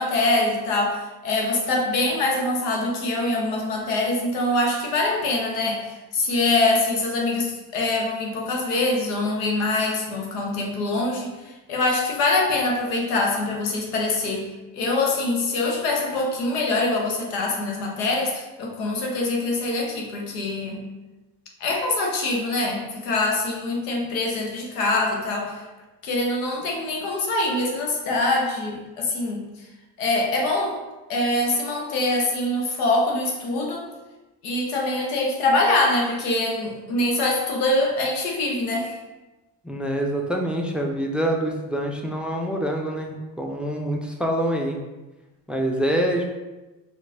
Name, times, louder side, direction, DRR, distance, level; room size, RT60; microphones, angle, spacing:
voice 1, 0.0-14.5 14.7-20.8 21.6-25.6 26.0-29.4 30.0-30.8 31.1-33.9 34.4-39.0, left 2 dB, 90° left, 0 dB, 0.8 m, -24 dB
voice 2, 39.6-44.8 45.5-46.3, right 1 dB, ahead, 1 dB, 0.5 m, -25 dB
4.4 x 2.4 x 2.6 m, 1.1 s
hypercardioid pair, 50°, 45 cm